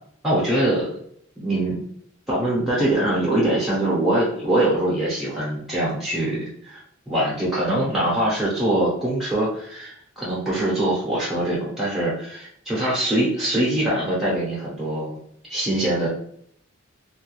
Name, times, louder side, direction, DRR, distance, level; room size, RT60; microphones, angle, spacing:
voice 1, 0.2-0.9 1.4-1.8 2.3-15.1 15.5-16.1, right 1 dB, ahead, -7 dB, 0.9 m, -23 dB
3.2 x 2.3 x 3.0 m, 0.67 s
head